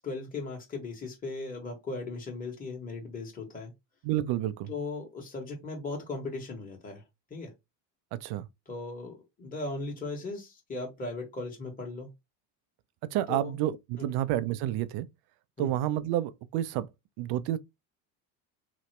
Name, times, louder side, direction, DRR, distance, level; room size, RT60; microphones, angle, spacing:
voice 1, 0.0-3.7 4.7-7.0 7.3-7.5 8.7-12.1 13.3-13.6 14.0-14.1 15.6-15.7, left 3 dB, 15° left, 1.3 m, -38 dB
voice 2, 4.0-4.7 8.1-8.5 13.0-15.1 15.6-16.9 17.2-17.6, right 13 dB, 55° right, 0.5 m, -30 dB
3.0 x 2.0 x 3.2 m
hypercardioid pair, 70°, 49 cm